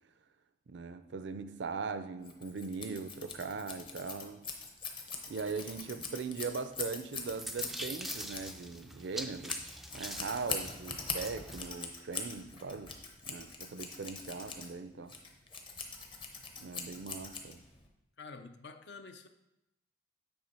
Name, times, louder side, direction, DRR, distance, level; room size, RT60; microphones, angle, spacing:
voice 1, 0.7-4.5 5.3-9.6 9.9-12.9 13.3-15.1 16.6-17.6, right 4 dB, 65° right, 0.4 m, -40 dB
Scissors, 2.2-17.9, left 4 dB, 25° left, 0.8 m, -42 dB
sound 1, 7.0-11.7, right 1 dB, ahead, 0.3 m, -44 dB
voice 2, 18.2-19.3, left 4 dB, 60° left, 0.5 m, -48 dB
7.9 x 3.6 x 5.4 m
head